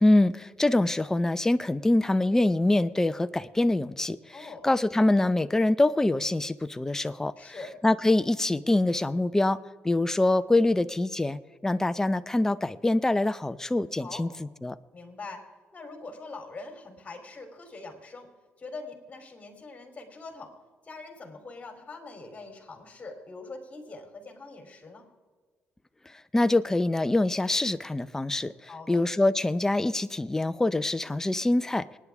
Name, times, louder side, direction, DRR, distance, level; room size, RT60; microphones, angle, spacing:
voice 1, 0.0-7.5 7.8-9.6 9.8-14.3 14.6-14.8 26.3-28.5 28.9-31.9, left 2 dB, 10° left, 12 dB, 0.6 m, -24 dB
voice 2, 4.3-4.7 7.4-7.7 14.0-14.2 14.9-15.4 15.7-18.3 18.6-20.5 20.8-25.0 28.7-29.0, left 3 dB, 30° left, 4 dB, 3.3 m, -43 dB
27.0 x 9.8 x 3.6 m, 1.4 s
cardioid pair, 95°, 4 cm